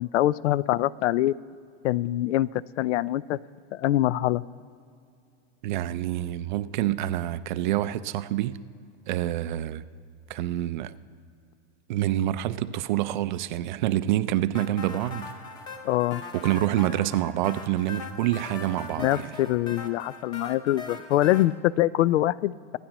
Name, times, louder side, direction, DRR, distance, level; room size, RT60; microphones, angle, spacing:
voice 1, 0.0-1.3 1.8-3.4 3.7-4.4 15.8-16.2 19.0-22.8, left 14 dB, 85° left, 0.5 m, -24 dB
voice 2, 5.6-8.6 9.1-9.8 10.3-10.9 11.9-15.3 16.3-19.3, right 13 dB, 45° right, 0.4 m, -27 dB
sound 1, 14.5-21.5, left 4 dB, 15° left, 0.5 m, -40 dB
25.5 x 9.9 x 3.0 m
supercardioid pair, 160°, 35 cm